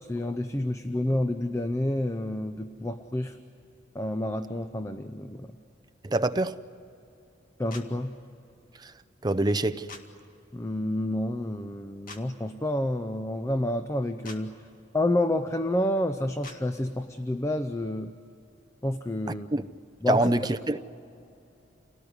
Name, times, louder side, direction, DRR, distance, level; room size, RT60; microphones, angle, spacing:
voice 1, 0.0-3.4 3.9-5.5 7.6-8.2 10.5-14.5 14.9-18.1 18.8-19.5 20.0-20.3, left 1 dB, 15° left, 0.7 m, -29 dB
voice 2, 6.0-6.6 8.8-8.9 9.2-9.9 19.5-19.6 20.1-20.8, right 2 dB, 20° right, 0.6 m, -25 dB
sound 1, 7.7-7.9 9.9-10.0 12.1-12.2 14.2-14.4 16.4-16.6, left 3 dB, 45° left, 2.1 m, -43 dB
28.5 x 18.5 x 9.7 m
head